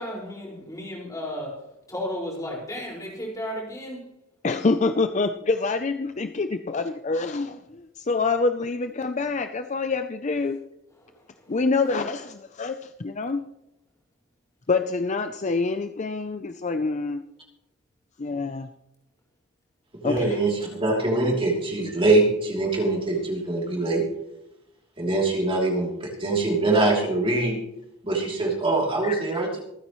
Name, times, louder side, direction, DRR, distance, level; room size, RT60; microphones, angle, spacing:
voice 1, 0.0-1.5 1.9-4.0 20.2-20.3, equal, 15° left, -3 dB, 5.1 m, -33 dB
voice 2, 4.4-10.6 11.5-13.4 14.7-17.2 18.2-18.7 20.0-20.4 29.0-29.4, left 3 dB, 35° left, 8 dB, 0.5 m, -26 dB
voice 3, 20.0-24.0 25.0-27.6 28.0-29.6, right 2 dB, 25° right, -2 dB, 3.1 m, -23 dB
26.0 x 9.6 x 3.1 m, 0.85 s
head